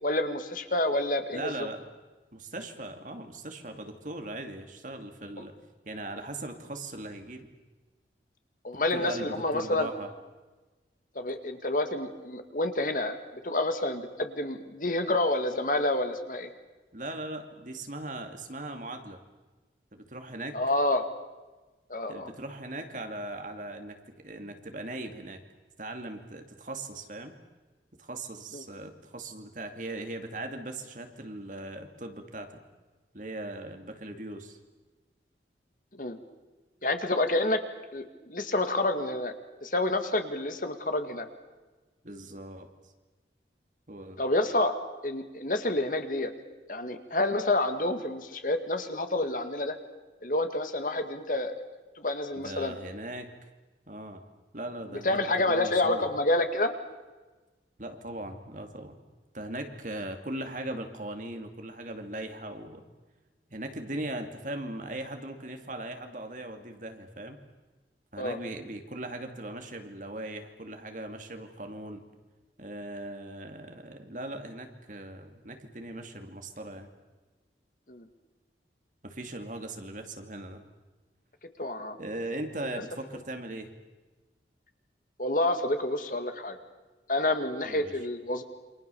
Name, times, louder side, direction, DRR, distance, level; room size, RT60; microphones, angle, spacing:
voice 1, 0.0-1.5 8.6-9.9 11.2-13.2 13.4-16.5 20.5-21.1 21.9-22.3 28.5-28.6 36.0-36.2 36.8-37.6 37.9-39.3 39.6-41.3 44.2-44.7 45.0-46.3 46.7-49.8 50.2-51.5 52.0-52.7 55.0-56.7 68.2-68.4 77.9-78.1 81.6-82.0 85.2-86.6 87.1-88.4, left 2 dB, 50° left, 8 dB, 2.1 m, -28 dB
voice 2, 1.3-1.8 2.3-5.5 5.8-7.5 8.9-10.1 16.9-19.2 19.9-20.6 22.1-25.4 25.8-27.3 28.0-32.5 33.1-34.6 42.0-42.7 43.9-44.2 52.4-53.3 53.9-54.2 54.5-56.1 57.8-59.0 59.3-62.8 63.5-67.4 68.1-72.0 72.6-76.9 79.0-80.6 82.0-83.7 87.6-87.9, right 1 dB, 45° right, 6 dB, 2.5 m, -39 dB
28.5 x 25.0 x 7.1 m, 1.2 s
head